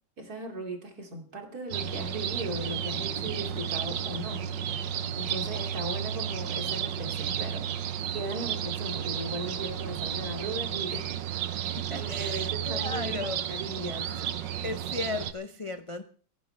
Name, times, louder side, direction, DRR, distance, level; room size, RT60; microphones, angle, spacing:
voice 1, 0.2-7.7 8.1-11.2 11.5-14.3, right 1 dB, 55° right, 2 dB, 3.2 m, -38 dB
sound 1, 1.7-15.3, right 9 dB, 90° right, 1.5 m, -32 dB
voice 2, 11.7-13.4 14.6-16.0, left 2 dB, 50° left, 7 dB, 0.4 m, -35 dB
27.5 x 11.0 x 3.3 m, 0.43 s
omnidirectional pair, 1.9 m